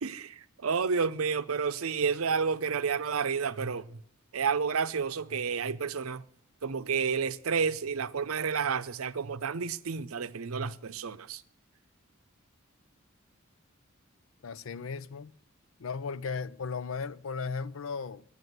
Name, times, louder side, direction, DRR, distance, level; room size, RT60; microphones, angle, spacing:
voice 1, 0.0-4.0 4.3-6.2 6.6-11.4, right 5 dB, 85° right, 0.6 m, -30 dB
voice 2, 14.4-15.3 15.8-18.2, left 5 dB, 70° left, 0.5 m, -36 dB
11.0 x 9.7 x 7.9 m
head